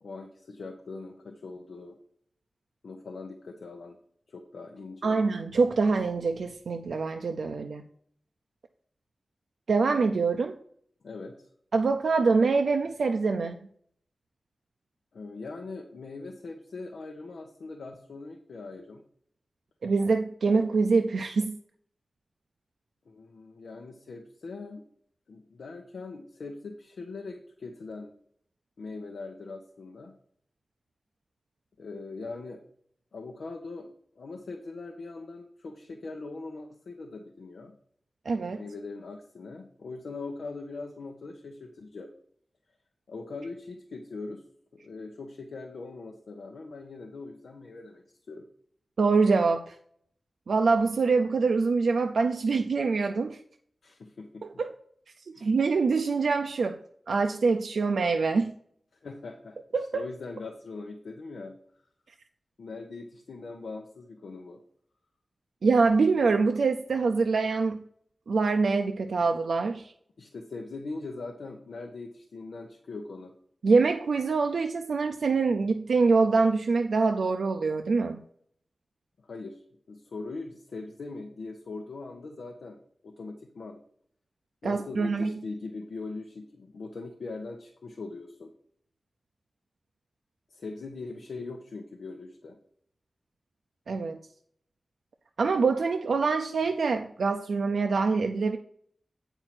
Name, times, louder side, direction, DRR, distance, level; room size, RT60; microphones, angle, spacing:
voice 1, 0.0-2.0 2.8-4.0 4.3-5.2 11.0-11.5 15.1-19.0 23.1-24.8 25.3-28.1 28.8-30.1 31.8-32.6 33.1-33.9 34.1-37.8 38.6-42.1 43.1-44.4 44.7-48.4 53.8-54.6 55.3-55.5 58.9-59.6 59.9-61.5 62.6-64.6 70.2-73.3 79.2-83.8 84.6-88.5 90.5-92.6, left 3 dB, 90° left, 2 dB, 0.9 m, -41 dB
voice 2, 5.0-7.9 9.7-10.5 11.7-13.6 19.8-21.5 38.3-38.6 49.0-49.8 50.5-53.4 54.6-54.7 55.3-56.8 57.1-58.5 59.7-60.0 65.6-67.8 68.3-69.9 73.6-78.2 84.6-85.3 93.9-94.2 95.4-98.6, right 4 dB, 85° right, 4 dB, 0.5 m, -25 dB
8.7 x 4.6 x 5.8 m, 0.65 s
wide cardioid pair, 70°, 0 cm